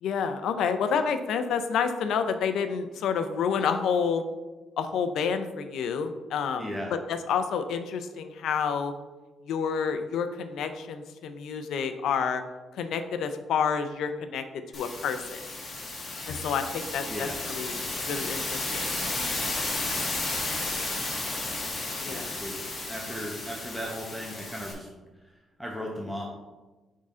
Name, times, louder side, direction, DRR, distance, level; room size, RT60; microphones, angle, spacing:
voice 1, 0.0-4.2 4.8-6.7 7.1-8.9 9.5-12.4 12.7-14.4 14.7-15.4 16.3-17.8 18.1-19.0 22.0-22.3, left 6 dB, 80° left, 9 dB, 0.5 m, -29 dB
voice 2, 6.6-6.9 17.1-17.4 22.1-24.9 25.6-26.2, equal, ahead, -2 dB, 0.8 m, -36 dB
sound 1, 14.7-24.7, left 2 dB, 35° left, 1.5 m, -33 dB
8.3 x 3.7 x 3.7 m, 1.2 s
cardioid pair, 125°, 0 cm